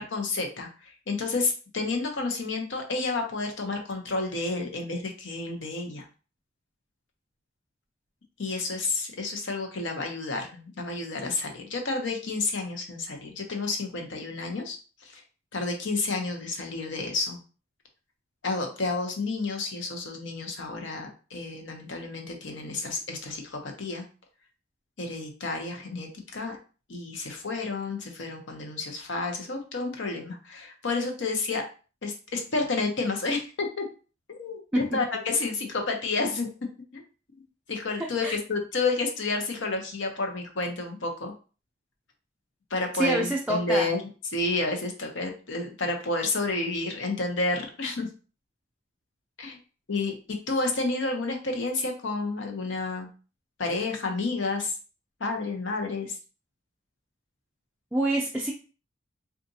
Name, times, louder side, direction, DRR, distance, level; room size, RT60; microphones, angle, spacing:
voice 1, 0.0-6.1 8.4-15.2 15.5-17.4 18.4-24.0 25.0-26.6 26.9-31.6 32.0-33.8 34.3-36.5 36.9-37.0 37.3-37.4 37.7-41.3 42.7-44.0 44.3-48.1 49.4-49.6 49.9-53.1 53.6-54.8 55.2-56.2, left 3 dB, 70° left, 3 dB, 0.7 m, -30 dB
voice 2, 42.9-43.9 57.9-58.5, right 1 dB, 5° right, -2 dB, 0.3 m, -26 dB
3.8 x 2.4 x 2.7 m, 0.35 s
head